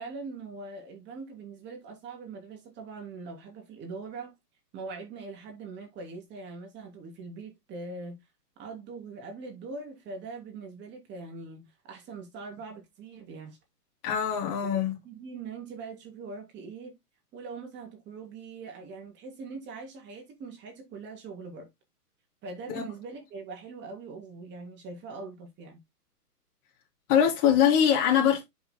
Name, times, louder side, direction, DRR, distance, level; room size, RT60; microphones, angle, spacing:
voice 1, 0.0-4.3 4.7-8.2 8.6-13.6 14.6-17.0 17.3-21.7 22.4-25.8, right 4 dB, 20° right, 3.1 m, -42 dB
voice 2, 14.0-14.9 22.7-22.8 27.1-28.4, left 9 dB, 35° left, 3.5 m, -23 dB
11.0 x 6.2 x 2.2 m
hypercardioid pair, 130°, 48 cm